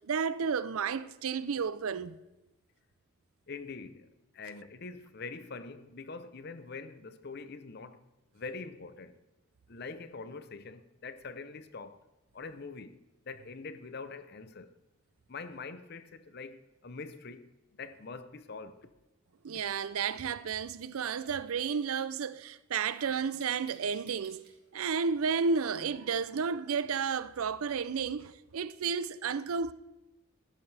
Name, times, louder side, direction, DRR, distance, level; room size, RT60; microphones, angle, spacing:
voice 1, 0.1-2.2 19.4-24.4 24.7-29.7, right 6 dB, 85° right, 0.5 m, -32 dB
voice 2, 3.5-8.0 8.3-9.2 9.7-12.0 12.3-14.7 15.3-17.5 17.8-18.9, left 4 dB, 50° left, 0.7 m, -44 dB
sound 1, 19.3-19.4 19.8-21.5 22.8-24.5, right 4 dB, 45° right, 3.2 m, -57 dB
15.0 x 12.0 x 3.3 m
head